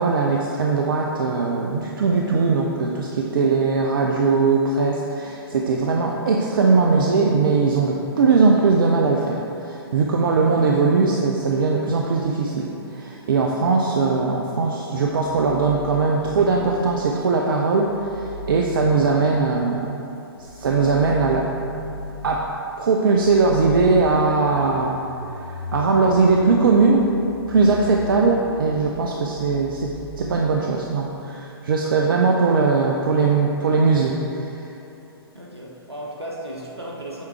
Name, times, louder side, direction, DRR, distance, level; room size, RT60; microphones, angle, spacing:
voice 1, 0.0-20.1 20.4-21.5 22.2-22.5 22.8-25.0 25.4-29.9 30.2-34.5, right 4 dB, 55° right, 0 dB, 0.5 m, -20 dB
sound 1, 15.0-16.9 17.8-19.5 20.4-22.4 23.1-30.4, left 1 dB, 85° left, 0.8 m, -36 dB
voice 2, 35.3-37.3, right 1 dB, 85° right, -4 dB, 1.2 m, -35 dB
7.4 x 3.6 x 4.4 m, 2.8 s
figure-of-eight pair, 120°, 13 cm